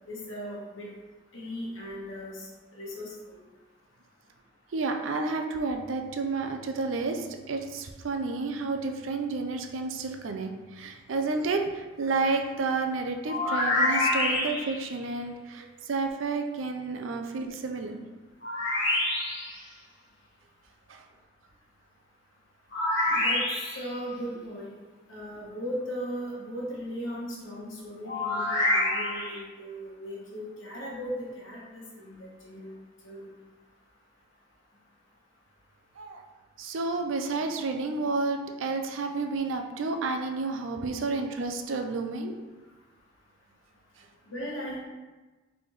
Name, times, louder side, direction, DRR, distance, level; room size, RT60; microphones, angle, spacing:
voice 1, 0.1-0.9 1.3-3.4 23.1-23.4 23.7-24.7 25.1-32.7 33.0-33.3 41.0-41.1 44.3-44.8, equal, 85° left, -4 dB, 1.3 m, -38 dB
voice 2, 4.7-18.0 20.9-21.0 23.1-23.2 36.0-36.2 36.6-42.3 44.0-44.1, right 3 dB, 85° right, 5 dB, 0.5 m, -31 dB
sound 1, 13.2-14.9 18.4-19.6 22.7-23.9 28.1-29.4, left 2 dB, 60° left, 1.2 m, -27 dB
4.2 x 3.4 x 3.1 m, 1.2 s
head